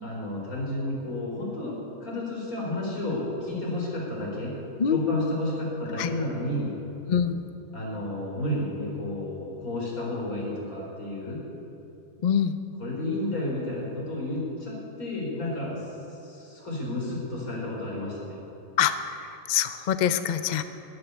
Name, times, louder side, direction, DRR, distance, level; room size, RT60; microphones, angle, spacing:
voice 1, 0.0-4.5 4.9-6.7 7.7-11.4 12.8-18.4, left 1 dB, 80° left, -4 dB, 4.9 m, -31 dB
voice 2, 4.8-5.3 6.0-6.1 7.1-7.4 12.2-12.6 18.8-20.6, left 8 dB, 50° left, 10 dB, 0.5 m, -25 dB
12.0 x 11.5 x 9.7 m, 2.9 s
omnidirectional pair, 1.5 m